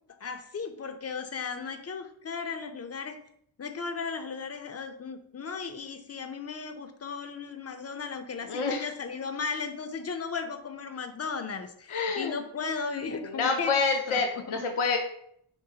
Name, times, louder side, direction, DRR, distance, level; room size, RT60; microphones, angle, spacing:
voice 1, 0.2-3.2 3.6-13.7 14.1-14.6, left 5 dB, 30° left, 8 dB, 0.4 m, -36 dB
voice 2, 8.5-8.9 11.9-12.3 13.2-15.0, left 4 dB, 75° left, 3 dB, 0.6 m, -27 dB
5.3 x 3.0 x 2.7 m, 0.69 s
wide cardioid pair, 100°, 50 cm